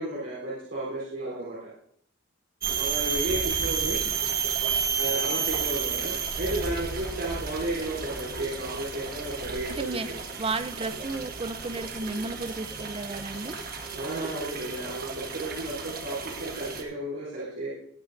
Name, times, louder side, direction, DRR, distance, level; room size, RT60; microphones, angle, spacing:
voice 1, 0.0-1.7 2.7-4.0 4.9-10.0 13.9-17.7, right 1 dB, 75° right, -8 dB, 3.8 m, -33 dB
sound 1, 2.6-16.8, right 6 dB, 50° right, 1.4 m, -32 dB
voice 2, 9.7-10.1 10.4-13.6, right 3 dB, 30° right, 12 dB, 0.6 m, -33 dB
20.0 x 9.2 x 2.6 m, 0.66 s
head